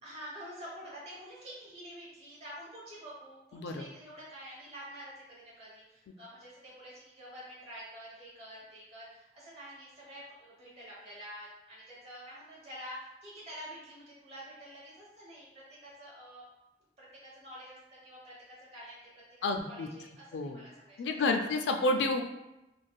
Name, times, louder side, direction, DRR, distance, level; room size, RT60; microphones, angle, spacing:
voice 1, 0.0-16.5 17.0-17.8 18.0-19.0 19.6-20.3 20.5-21.5, equal, 35° right, -7 dB, 1.0 m, -48 dB
voice 2, 3.5-3.8 19.4-19.9 20.3-20.6 21.0-22.2, left 2 dB, 80° left, 4 dB, 0.3 m, -29 dB
3.2 x 2.5 x 2.2 m, 0.96 s
head